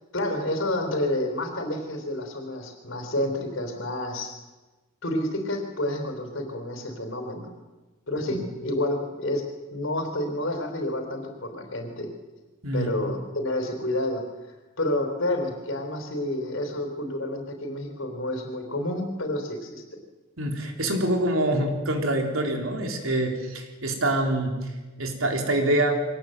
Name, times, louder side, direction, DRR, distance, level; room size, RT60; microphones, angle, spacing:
voice 1, 0.1-4.3 5.0-7.5 8.1-9.4 9.7-12.1 12.7-14.2 14.8-19.8, left 1 dB, 70° left, 5 dB, 3.9 m, -29 dB
voice 2, 20.4-24.7 25.0-26.0, right 1 dB, 85° right, 3 dB, 3.8 m, -25 dB
23.5 x 18.5 x 8.0 m, 1.2 s
head